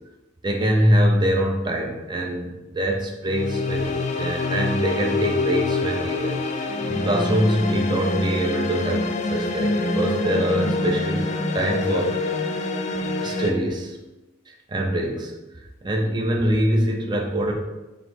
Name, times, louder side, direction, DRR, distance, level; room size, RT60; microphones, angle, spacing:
voice 1, 0.4-11.2 11.5-12.5 13.2-14.0 14.5-15.3 15.8-17.5, right 1 dB, 25° right, 1 dB, 0.5 m, -24 dB
sound 1, 3.2-13.5, left 2 dB, 40° left, 0.4 m, -25 dB
3.1 x 2.9 x 4.2 m, 1.1 s
head